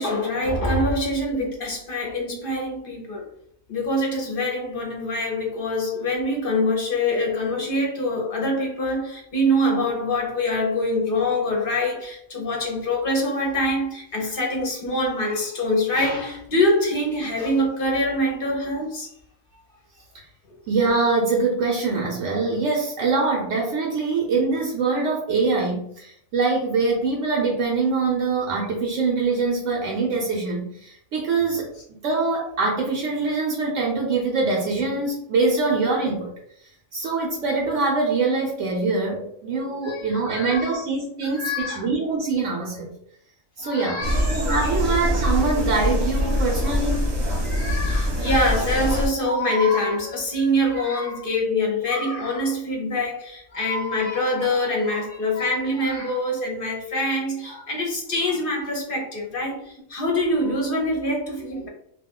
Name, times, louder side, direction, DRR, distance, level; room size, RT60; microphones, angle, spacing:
voice 1, 0.0-3.3 3.7-19.1 37.0-37.1 39.8-40.8 41.2-42.0 43.6-44.8 47.4-61.7, left 1 dB, 50° left, 0.7 m, -25 dB
voice 2, 20.7-36.3 36.9-43.0 43.6-44.0 44.3-47.1, right 3 dB, 70° right, 0.9 m, -24 dB
sound 1, 44.0-49.1, equal, 40° right, 0.7 m, -23 dB
2.3 x 2.3 x 3.6 m
omnidirectional pair, 1.4 m